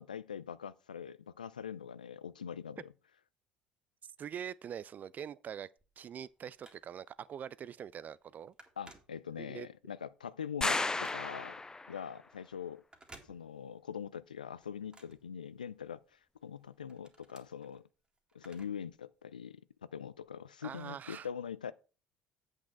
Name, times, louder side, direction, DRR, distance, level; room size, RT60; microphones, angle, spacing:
voice 1, 0.0-2.9 8.8-11.6 11.9-12.8 13.3-17.8 18.3-19.6 19.9-21.7, left 8 dB, 85° left, 0.3 m, -43 dB
voice 2, 4.2-5.7 6.0-8.5 9.4-9.7 20.6-21.3, right 8 dB, 40° right, 0.4 m, -44 dB
Telephone, 5.8-7.2 7.7-7.9 8.2-9.7 10.1-11.6 12.8-13.9 14.2-16.0 16.4-18.9 19.2-19.3 20.2-20.3, right 2 dB, 20° right, 2.0 m, -59 dB
sound 1, 10.6-12.1, left 3 dB, 15° left, 0.5 m, -34 dB
8.1 x 6.0 x 4.5 m
figure-of-eight pair, 55°, 4 cm